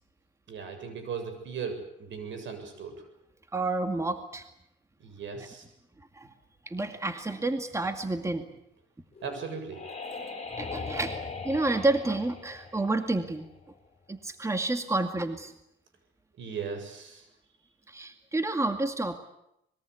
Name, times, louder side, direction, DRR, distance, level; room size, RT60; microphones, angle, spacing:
voice 1, 0.5-3.0 5.0-5.7 9.2-9.8 16.4-17.3, right 6 dB, 70° right, 8 dB, 7.5 m, -37 dB
voice 2, 3.5-4.5 6.1-6.3 6.7-8.5 10.6-13.5 14.1-15.5 17.9-19.2, right 2 dB, 15° right, 7 dB, 2.2 m, -29 dB
sound 1, 9.2-13.7, left 4 dB, 30° left, 5.6 m, -39 dB
25.5 x 22.0 x 8.4 m, 0.80 s
cardioid pair, 90°, 20 cm